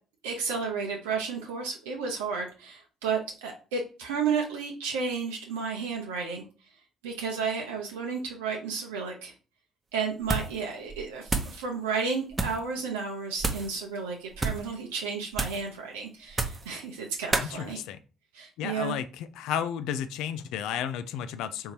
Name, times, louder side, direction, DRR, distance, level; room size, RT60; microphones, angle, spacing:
voice 1, 0.2-6.4 7.0-9.3 9.9-17.8 18.3-18.9, right 5 dB, 80° right, 0 dB, 0.7 m, -32 dB
sound 1, 10.2-10.6 10.9-11.6 12.3-12.7 13.4-13.7 14.3-14.7 15.3-15.7 16.3-16.7 17.3-17.5, right 3 dB, 25° right, 0.8 m, -30 dB
voice 2, 17.4-18.0 18.6-21.7, left 9 dB, 70° left, 11 dB, 0.4 m, -33 dB
3.7 x 2.8 x 4.4 m, 0.35 s
hypercardioid pair, 50°, 0 cm